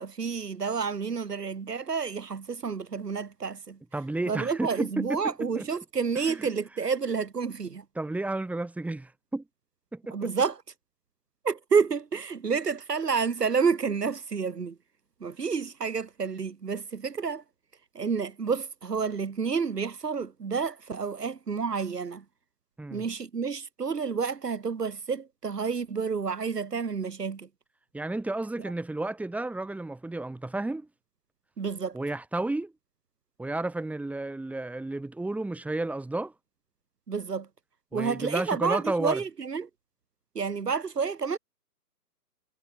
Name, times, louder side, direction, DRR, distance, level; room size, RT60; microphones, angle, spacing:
voice 1, 0.0-3.8 4.3-7.8 10.1-10.6 11.4-14.8 15.2-17.4 17.9-22.2 22.9-27.5 31.6-32.0 37.1-37.5 37.9-39.7 40.3-41.4, right 5 dB, 75° right, 2.5 m, -29 dB
voice 2, 3.9-5.6 6.3-6.5 8.0-9.4 9.9-10.3 22.8-23.1 27.9-30.9 31.9-32.7 33.4-36.3 37.9-39.2, right 2 dB, 5° right, 6.8 m, -32 dB
figure-of-eight pair, 135°, 48 cm